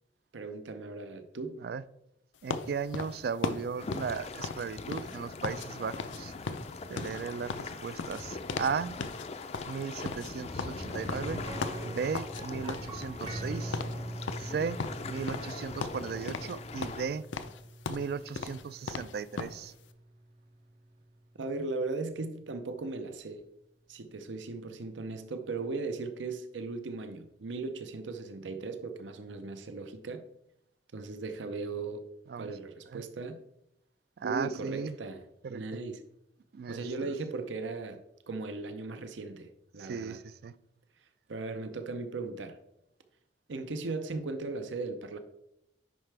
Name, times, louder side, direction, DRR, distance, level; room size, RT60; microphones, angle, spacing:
voice 1, 0.3-1.6 21.4-23.5 23.9-30.2 30.9-32.1 32.3-33.4 34.2-35.2 35.5-36.0 36.7-38.0 38.3-40.2 41.3-42.6 43.5-45.2, right 3 dB, 85° right, 0.7 m, -37 dB
voice 2, 2.4-6.3 6.9-9.0 9.7-11.4 11.8-13.8 14.4-17.3 17.9-19.7 32.3-32.5 32.9-33.0 34.2-34.9 35.4-35.6 36.5-37.1 39.8-40.5, right 6 dB, 55° right, 0.3 m, -36 dB
sound 1, 2.5-5.7 5.9-6.2 6.5-8.8 9.0-9.3 9.5-12.4 12.7-13.5 13.7-14.0 14.3-15.5 15.8-16.6 16.8-19.6, left 4 dB, 85° left, 0.6 m, -37 dB
sound 2, 3.8-17.0, left 3 dB, 35° left, 0.4 m, -42 dB
sound 3, 10.8-20.6 20.9-21.0 23.4-23.5, right 1 dB, 30° right, 0.7 m, -42 dB
9.4 x 5.5 x 3.4 m
head